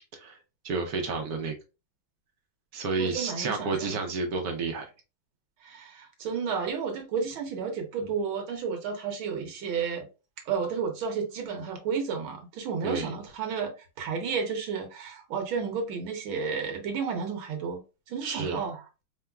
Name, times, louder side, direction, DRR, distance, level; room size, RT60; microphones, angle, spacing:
voice 1, 0.6-1.5 2.7-4.8 12.8-13.1 18.2-18.6, right 4 dB, 65° right, 1.0 m, -30 dB
voice 2, 3.0-4.0 5.6-10.1 10.4-13.7 14.0-17.8 18.1-18.8, right 6 dB, 85° right, 1.8 m, -32 dB
4.4 x 3.5 x 2.3 m
omnidirectional pair, 2.2 m